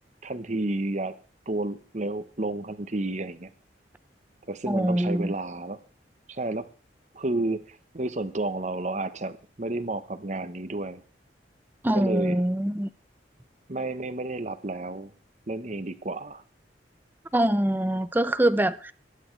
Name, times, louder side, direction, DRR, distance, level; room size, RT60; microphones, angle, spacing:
voice 1, 0.2-1.1 1.5-3.5 4.5-5.8 6.3-6.7 7.1-11.0 11.9-12.4 13.7-15.1 15.5-16.4, right 2 dB, 40° right, 1.0 m, -31 dB
voice 2, 4.7-5.3 11.8-12.9 17.3-18.9, right 1 dB, 10° right, 0.6 m, -24 dB
21.0 x 9.7 x 3.3 m
head